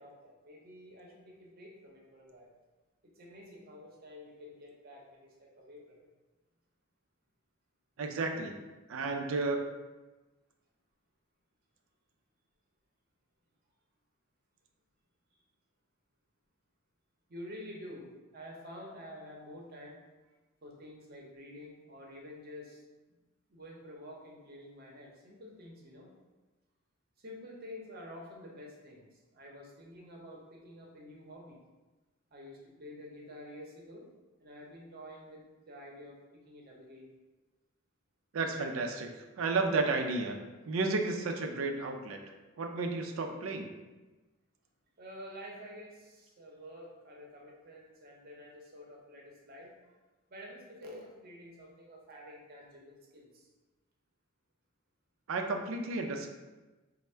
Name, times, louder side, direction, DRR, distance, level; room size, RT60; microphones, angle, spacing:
voice 1, 0.0-2.5 3.0-6.1 17.3-18.1 18.3-20.0 20.6-22.8 23.5-26.1 27.2-31.6 32.3-34.1 34.4-37.0 45.0-50.0 50.3-53.5, left 1 dB, 50° right, -1 dB, 0.7 m, -49 dB
voice 2, 8.0-8.5 8.9-9.6 38.3-39.1 39.4-40.4 40.7-42.2 42.6-43.7 55.3-56.3, right 3 dB, 75° right, 4 dB, 0.4 m, -32 dB
3.4 x 2.0 x 4.2 m, 1.2 s
head